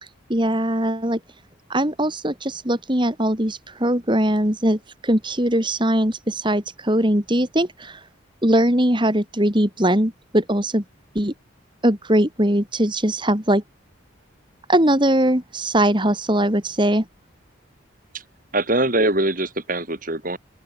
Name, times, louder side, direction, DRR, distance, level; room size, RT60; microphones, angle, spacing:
voice 1, 0.0-1.2 1.7-8.1 8.4-10.8 11.2-11.3 11.8-13.6 14.7-17.1, right 1 dB, 25° right, 3.4 m, -21 dB
voice 2, 18.5-20.4, right 1 dB, 40° right, 5.1 m, -22 dB
open air
head